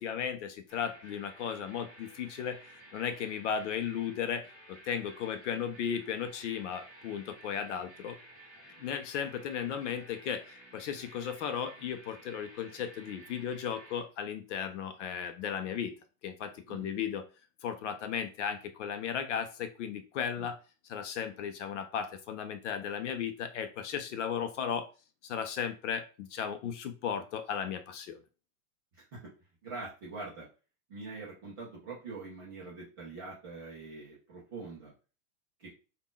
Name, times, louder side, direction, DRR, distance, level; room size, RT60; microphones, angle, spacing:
voice 1, 0.0-2.6 2.9-8.2 8.8-16.0 16.2-17.2 17.6-20.6 20.9-24.9 25.2-28.2, left 8 dB, 50° left, 0.6 m, -35 dB
sound 1, 0.7-14.0, right 1 dB, 30° left, 1.8 m, -54 dB
voice 2, 28.9-29.3 29.6-30.5 30.9-34.9 35.6-35.7, right 3 dB, 15° right, 0.4 m, -44 dB
3.7 x 2.3 x 3.7 m
supercardioid pair, 165°, 47 cm